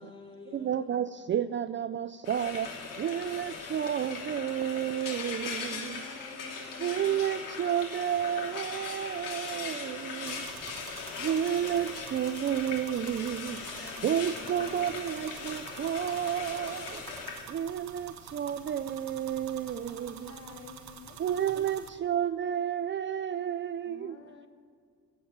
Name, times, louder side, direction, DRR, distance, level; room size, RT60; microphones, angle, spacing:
voice 1, 0.0-0.9 5.5-7.0 9.8-11.1 13.6-14.6 19.8-20.8, left 2 dB, 15° left, 0 dB, 3.0 m, -52 dB
voice 2, 0.5-6.0 6.8-10.4 11.2-17.0 17.5-20.3 21.2-24.2, right 9 dB, 35° right, 12 dB, 0.4 m, -31 dB
Frying (food), 2.2-17.4, left 5 dB, 85° left, 3.0 m, -39 dB
voice 3, 5.8-7.2 13.8-14.9 20.2-21.2 23.9-24.5, left 4 dB, 50° left, 5 dB, 1.3 m, -51 dB
sound 1, 10.2-21.9, right 7 dB, 60° right, 1.3 m, -48 dB
16.5 x 7.8 x 8.7 m, 2.1 s
cardioid pair, 145°, 32 cm